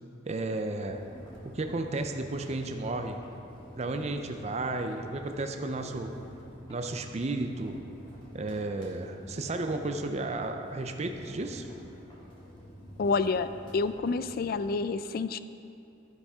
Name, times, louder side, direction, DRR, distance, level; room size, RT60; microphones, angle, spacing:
voice 1, 0.3-1.0 1.4-3.2 3.8-6.2 6.7-7.8 8.3-11.7, right 2 dB, 35° right, 6 dB, 0.5 m, -33 dB
sound 1, 0.9-14.8, equal, 25° left, 1.9 m, -48 dB
voice 2, 13.0-13.5 13.7-15.4, left 4 dB, 50° left, 13 dB, 0.3 m, -28 dB
11.5 x 9.9 x 3.6 m, 2.7 s
head